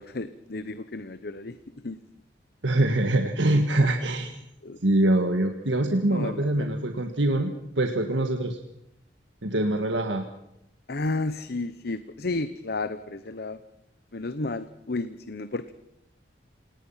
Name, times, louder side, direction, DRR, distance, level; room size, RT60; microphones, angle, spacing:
voice 1, 0.0-1.6 1.8-2.0 4.6-4.8 6.1-6.8 10.9-13.6 14.1-15.7, left 2 dB, 55° left, 13 dB, 0.9 m, -32 dB
voice 2, 2.6-4.3 4.8-8.6 9.4-10.2, right 1 dB, 80° right, 5 dB, 1.7 m, -24 dB
27.5 x 19.0 x 5.7 m, 0.84 s
head